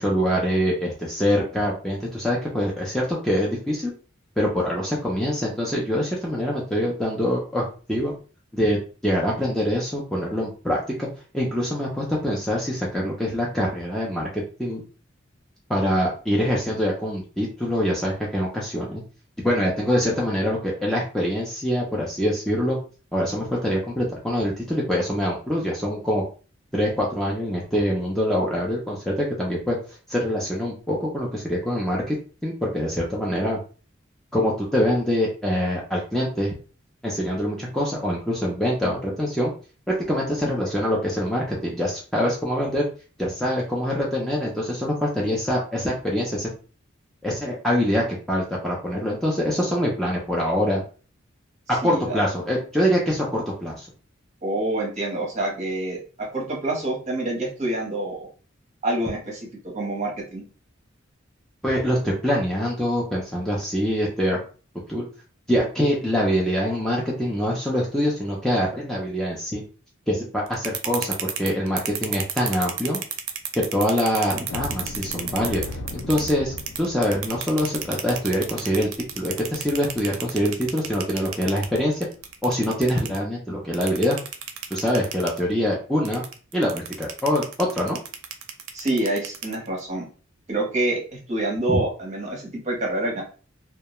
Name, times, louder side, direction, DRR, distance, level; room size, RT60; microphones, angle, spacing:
voice 1, 0.0-3.9 4.4-8.1 8.5-11.1 11.3-14.8 15.7-19.0 19.4-22.8 23.1-26.2 26.7-29.8 30.1-32.2 32.4-33.6 34.3-36.5 37.0-39.5 39.9-42.9 43.2-46.5 47.2-50.8 51.7-53.9 61.6-64.4 64.9-65.1 65.5-69.6 70.1-73.0 73.5-75.6 75.9-78.9 79.2-82.1 82.4-84.2 84.7-86.2 86.5-88.0, equal, ahead, -4 dB, 0.4 m, -24 dB
voice 2, 51.8-52.1 54.4-58.3 58.8-59.5 59.7-60.4 88.7-90.1 90.5-93.2, right 2 dB, 35° right, -1 dB, 0.9 m, -27 dB
sound 1, 70.5-76.3 76.6-83.2 83.7-85.4 86.0-89.8, right 8 dB, 90° right, 0.4 m, -31 dB
sound 2, 74.5-81.2 81.6-81.7 82.1-82.3 82.8-83.0, left 3 dB, 65° left, 0.3 m, -39 dB
2.2 x 2.1 x 2.9 m, 0.37 s
head